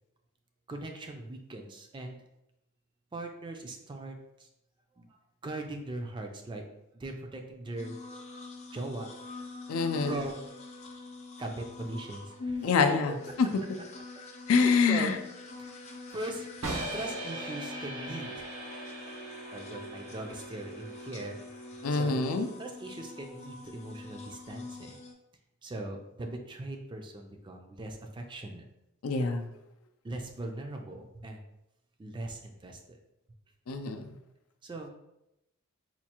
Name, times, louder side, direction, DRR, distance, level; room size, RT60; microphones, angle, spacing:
voice 1, 0.7-2.2 3.1-4.5 5.0-5.2 5.4-6.6 6.9-8.0 8.7-9.1 10.1-10.5 11.4-12.8 13.1-13.2 14.5-15.1 15.6-15.7 16.1-16.5 16.9-18.5 19.5-21.4 21.9-22.3 22.6-25.0 25.6-28.7 30.0-31.4 32.0-33.0 34.6-34.9, right 2 dB, 20° right, 0.3 m, -40 dB
sound 1, 7.8-25.1, left 3 dB, 30° left, 0.5 m, -45 dB
voice 2, 9.7-10.2 12.6-13.5 14.5-15.2 21.8-22.5 29.0-29.5 33.7-34.2, left 5 dB, 90° left, 0.4 m, -26 dB
sound 2, 16.6-22.6, right 1 dB, 80° right, 0.8 m, -40 dB
4.3 x 2.3 x 2.9 m
head